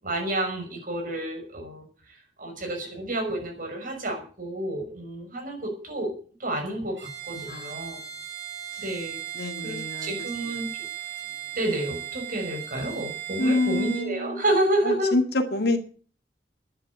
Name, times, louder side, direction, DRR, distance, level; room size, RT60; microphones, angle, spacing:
voice 1, 0.0-6.1 6.4-8.0 8.8-9.2 9.6-10.7 11.5-15.2, right 1 dB, 50° right, 3 dB, 6.1 m, -30 dB
Bowed string instrument, 7.0-14.1, right 11 dB, 80° right, 3.8 m, -37 dB
voice 2, 7.5-7.9 9.4-10.1 13.4-14.4 14.9-15.8, left 2 dB, 60° left, 6 dB, 2.0 m, -27 dB
11.0 x 10.0 x 8.6 m, 0.42 s
head